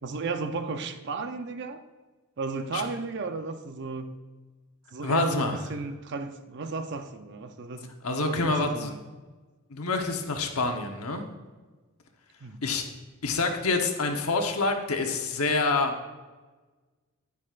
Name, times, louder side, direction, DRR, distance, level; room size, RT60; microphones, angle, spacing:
voice 1, 0.0-1.8 2.4-4.2 4.9-7.9 8.3-9.0 12.4-12.7, right 3 dB, 55° right, 8 dB, 0.6 m, -34 dB
voice 2, 5.0-5.5 8.0-8.9 9.7-11.3 12.6-12.8 13.2-16.1, left 3 dB, 85° left, 4 dB, 1.1 m, -27 dB
10.5 x 9.7 x 2.5 m, 1.3 s
head